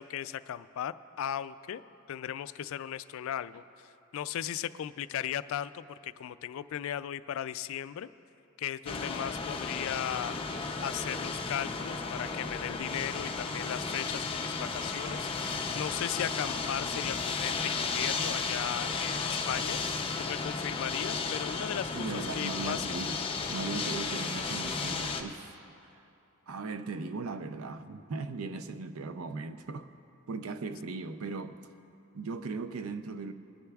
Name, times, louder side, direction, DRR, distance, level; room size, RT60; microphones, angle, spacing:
voice 1, 0.0-1.8 2.1-8.1 8.6-10.4 10.8-19.8 20.2-22.1 22.4-22.9, left 10 dB, 65° left, 0.3 m, -37 dB
sound 1, 8.9-25.2, left 4 dB, 25° left, 0.6 m, -34 dB
voice 2, 21.9-23.2 23.5-25.5 25.9-26.0 26.5-29.9 30.3-31.6 32.1-33.3, right 3 dB, 80° right, 0.5 m, -38 dB
22.5 x 10.0 x 2.3 m
head